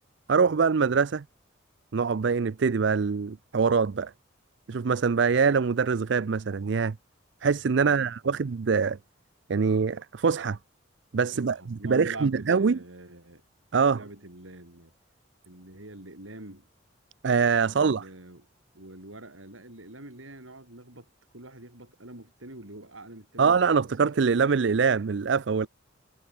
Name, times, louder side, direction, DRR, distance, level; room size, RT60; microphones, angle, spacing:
voice 1, 0.3-1.2 1.9-4.1 4.7-6.9 7.4-9.0 9.5-10.6 11.1-12.8 13.7-14.0 17.2-18.0 23.4-25.7, right 5 dB, 65° right, 0.5 m, -24 dB
voice 2, 7.8-8.3 11.3-13.4 13.9-14.9 15.5-16.7 17.6-18.5 18.7-21.1 21.3-23.9, right 1 dB, 85° right, 5.9 m, -45 dB
head